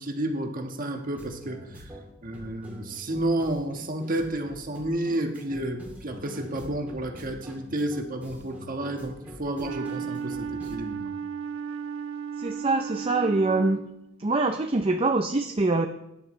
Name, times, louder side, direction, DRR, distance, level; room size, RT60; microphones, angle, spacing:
voice 1, 0.0-1.9 2.2-11.1, right 1 dB, 45° right, 4 dB, 1.4 m, -31 dB
sound 1, 1.1-10.7, equal, 10° right, 2.6 m, -45 dB
Wind instrument woodwind instrument, 9.6-14.1, right 6 dB, 80° right, 1.3 m, -35 dB
voice 2, 12.4-13.8 14.2-15.9, right 3 dB, 30° right, 4 dB, 0.5 m, -24 dB
17.5 x 10.5 x 3.2 m, 0.84 s
head